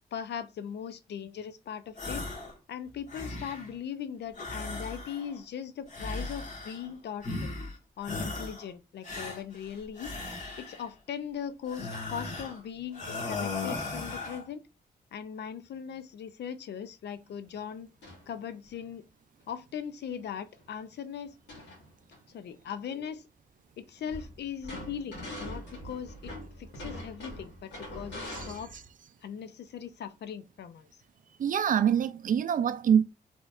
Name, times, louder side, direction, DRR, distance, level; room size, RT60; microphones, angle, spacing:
voice 1, 0.1-2.2 2.7-7.6 8.0-10.1 10.6-14.6 15.1-17.9 18.3-19.1 19.5-21.4 22.3-23.3 23.8-28.8 29.2-30.9, left 8 dB, 70° left, 0.5 m, -39 dB
sound 1, 2.0-2.6 2.9-3.8 4.3-5.4 5.9-6.9 7.2-7.8 8.0-8.7 9.0-10.9 11.7-12.6 12.9-14.5, left 3 dB, 45° left, 1.4 m, -37 dB
sound 2, 11.9-12.2 13.1-13.3 13.7-13.8 14.2-14.4 18.0-18.3 18.7-18.8 20.1-20.2 20.5-20.6 21.2-22.2 24.1-28.9, left 1 dB, 90° left, 1.7 m, -43 dB
voice 2, 28.3-28.6 31.4-33.0, right 8 dB, 50° right, 0.4 m, -25 dB
4.1 x 3.0 x 2.4 m
cardioid pair, 75°, 18 cm